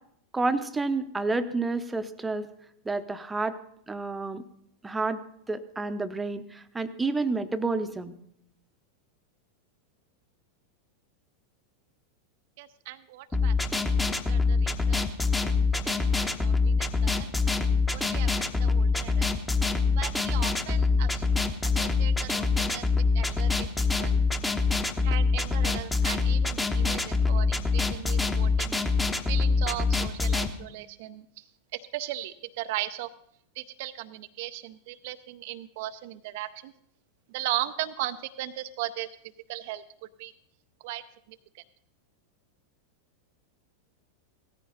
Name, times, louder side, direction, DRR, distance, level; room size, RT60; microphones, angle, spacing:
voice 1, 0.3-2.5 2.8-3.6 3.9-4.4 4.8-5.2 5.5-8.1, right 3 dB, 10° right, 11 dB, 0.8 m, -29 dB
voice 2, 12.6-15.0 15.7-17.3 17.6-18.3 18.6-19.3 20.0-21.3 21.6-22.8 23.1-24.2 25.0-28.8 29.3-31.2 31.7-33.1 33.6-36.7 37.3-39.1 39.5-39.8 40.2-40.3 40.8-41.0, right 15 dB, 50° right, 10 dB, 0.5 m, -37 dB
sound 1, 13.3-30.5, left 4 dB, 10° left, 1.0 m, -25 dB
17.5 x 14.0 x 4.0 m, 0.71 s
figure-of-eight pair, 90°, 0 cm